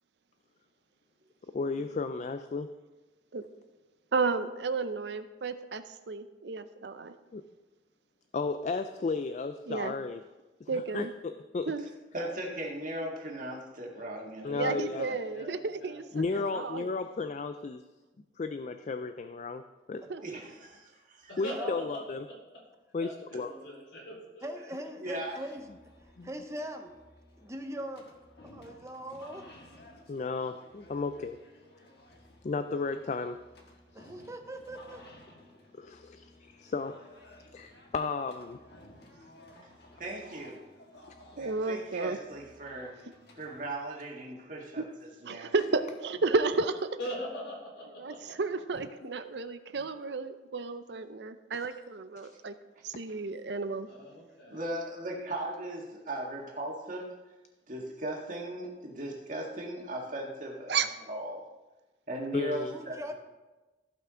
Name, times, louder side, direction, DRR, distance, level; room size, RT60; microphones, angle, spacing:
voice 1, 1.5-2.7 7.3-7.4 8.3-10.2 10.7-11.7 14.4-15.1 16.1-17.8 18.4-20.1 21.4-22.2 22.9-23.5 26.2-26.3 30.1-31.4 32.4-33.4 34.0-34.1 35.8-37.0 37.5-38.6 52.2-52.3 62.3-62.7, left 4 dB, 40° left, 10 dB, 0.3 m, -34 dB
voice 2, 4.1-7.1 9.7-9.9 10.7-11.1 11.7-11.9 14.5-16.9 20.1-20.4 41.4-42.2 44.8-44.9 45.3-46.9 48.0-52.5 52.8-53.9 60.7-60.9, right 4 dB, 75° right, 10 dB, 0.6 m, -32 dB
voice 3, 12.1-15.2 20.2-21.3 25.0-25.3 40.0-40.6 41.4-43.0 43.3-45.5 53.1-53.2 54.5-57.1 57.7-60.8 61.1-61.4 62.1-63.0, right 1 dB, 45° right, -1 dB, 1.8 m, -38 dB
voice 4, 14.4-16.4 21.3-22.6 23.0-24.5 47.0-48.4 53.9-54.7, equal, 85° left, -4 dB, 3.8 m, -43 dB
voice 5, 24.4-25.7 26.2-26.9 27.4-28.0 28.4-29.5 33.9-35.0 62.6-63.1, equal, 15° right, 5 dB, 0.6 m, -41 dB
sound 1, 25.2-43.7, left 1 dB, 65° left, 1.4 m, -56 dB
15.0 x 5.8 x 3.8 m, 1.1 s
head